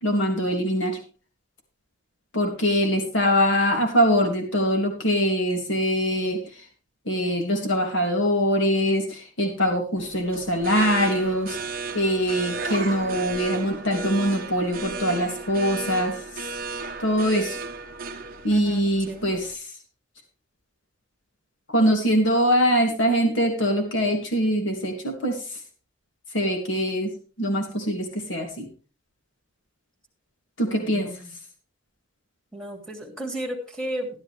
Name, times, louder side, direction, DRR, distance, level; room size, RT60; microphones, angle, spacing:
voice 1, 0.0-1.0 2.3-6.6 7.0-11.6 11.9-16.1 17.0-17.6 18.4-19.6 21.7-25.6 26.3-28.7 30.6-31.1, equal, 70° left, 3 dB, 3.0 m, -23 dB
sound 1, 10.0-19.5, right 3 dB, 45° right, 1.1 m, -34 dB
voice 2, 18.5-18.8 19.1-19.3 30.7-31.3 32.5-34.1, right 1 dB, 5° left, 1 dB, 2.9 m, -34 dB
14.0 x 11.5 x 3.5 m, 0.35 s
head